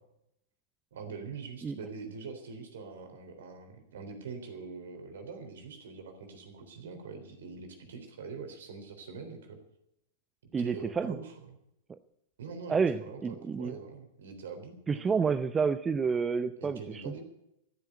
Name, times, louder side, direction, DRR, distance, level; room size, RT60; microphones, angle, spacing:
voice 1, 0.9-9.6 10.6-11.6 12.4-15.0 16.6-17.2, right 5 dB, 65° right, 6 dB, 3.6 m, -44 dB
voice 2, 10.5-11.2 11.9-12.0 12.7-13.8 14.9-17.2, right 5 dB, 15° right, 12 dB, 0.6 m, -29 dB
14.0 x 9.4 x 9.4 m, 0.80 s
figure-of-eight pair, 100°, 0 cm